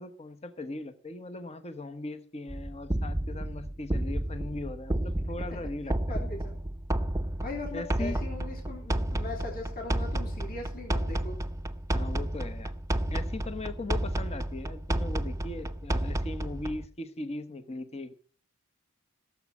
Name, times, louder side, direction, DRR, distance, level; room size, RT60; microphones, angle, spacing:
voice 1, 0.0-6.3 7.7-8.2 11.9-12.7 13.1-18.1, left 2 dB, 30° left, 9 dB, 1.0 m, -39 dB
sound 1, 2.5-16.9, right 1 dB, 15° right, 0.7 m, -31 dB
voice 2, 6.1-6.6 7.4-11.4, left 3 dB, 45° left, 0 dB, 3.5 m, -39 dB
16.5 x 7.2 x 6.0 m, 0.42 s
head